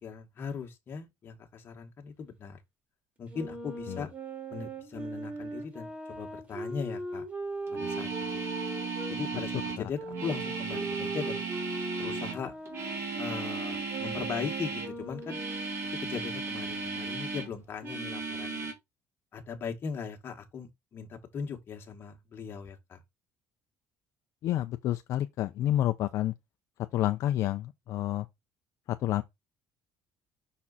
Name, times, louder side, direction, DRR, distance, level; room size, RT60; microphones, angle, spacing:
voice 1, 0.0-2.6 3.2-4.1 4.5-7.2 7.7-8.4 9.1-11.4 12.0-12.5 13.2-15.4 16.0-18.7 19.3-23.0, left 6 dB, 40° left, 1.6 m, -39 dB
Wind instrument woodwind instrument, 3.3-9.1 9.9-15.7, right 2 dB, 25° right, 2.4 m, -39 dB
sound 1, 7.7-14.9 15.2-17.5 17.8-18.7, right 4 dB, 45° right, 2.2 m, -35 dB
voice 2, 24.4-26.3 26.9-28.3 28.9-29.2, left 13 dB, 60° left, 0.5 m, -29 dB
6.1 x 4.3 x 4.1 m
cardioid pair, 130°, 6 cm